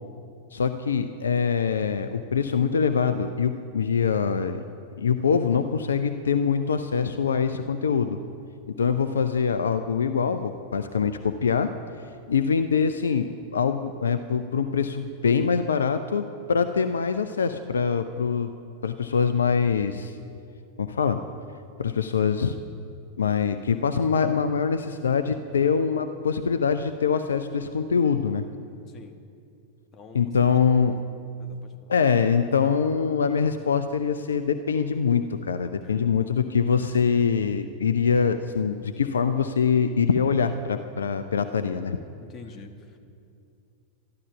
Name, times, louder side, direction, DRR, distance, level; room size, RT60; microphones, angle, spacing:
voice 1, 0.5-4.6 5.0-8.2 8.7-11.7 12.3-18.5 18.8-20.2 20.8-21.2 21.8-22.6 23.2-28.5 30.1-30.9 31.9-42.0, left 6 dB, 70° left, 10 dB, 0.5 m, -24 dB
voice 2, 28.9-29.2 29.9-30.3 31.4-31.9 35.6-36.7 42.2-43.0, left 4 dB, 25° left, 5 dB, 1.3 m, -47 dB
12.5 x 12.0 x 7.1 m, 2.5 s
figure-of-eight pair, 90°, 0 cm